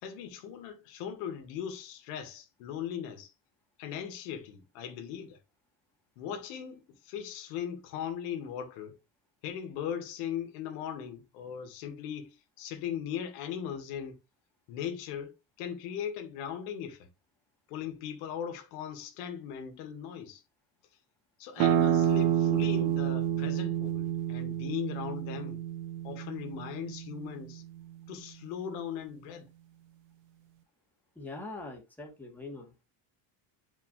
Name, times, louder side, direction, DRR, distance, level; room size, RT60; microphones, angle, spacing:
voice 1, 0.0-3.3 3.8-5.4 6.2-9.0 9.4-12.3 12.6-14.2 14.7-17.1 17.7-20.4 21.4-25.6 26.0-27.6 28.1-29.5, left 9 dB, 90° left, 2.2 m, -39 dB
sound 1, 21.6-27.0, right 10 dB, 90° right, 1.7 m, -28 dB
voice 2, 31.2-32.7, left 2 dB, 5° left, 2.1 m, -42 dB
8.9 x 5.2 x 3.3 m
cardioid pair, 160°, 50 cm